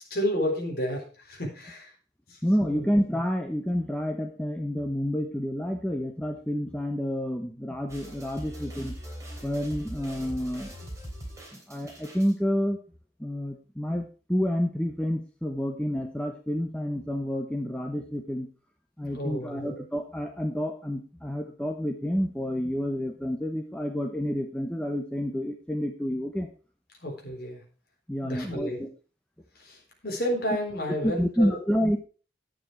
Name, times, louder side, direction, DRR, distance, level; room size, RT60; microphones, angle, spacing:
voice 1, 0.0-1.9 2.3-2.9 19.1-19.7 27.0-27.6 28.2-28.8 29.6-31.6, equal, 50° left, 0 dB, 4.0 m, -31 dB
voice 2, 2.4-8.9 9.4-10.7 11.5-12.8 13.2-18.5 19.0-26.5 28.1-28.9 31.0-32.0, equal, 5° left, 3 dB, 1.0 m, -29 dB
sound 1, 7.9-12.3, equal, 15° right, 3.3 m, -41 dB
11.0 x 8.9 x 4.7 m, 0.37 s
head